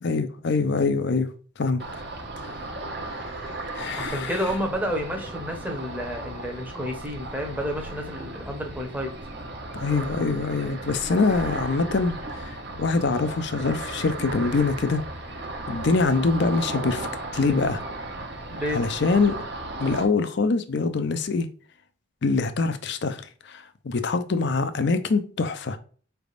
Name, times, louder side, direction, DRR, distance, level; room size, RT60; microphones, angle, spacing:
voice 1, 0.0-1.3 1.6-1.8 3.7-4.4 9.7-15.0 15.7-17.1 17.3-17.8 18.7-19.4 19.8-21.5 22.2-25.8, left 4 dB, 55° left, 0.5 m, -24 dB
Ocean, 1.8-20.0, right 2 dB, 50° right, 0.8 m, -35 dB
voice 2, 4.0-9.1 18.5-18.8, equal, 10° right, 0.9 m, -30 dB
4.9 x 3.4 x 2.4 m
head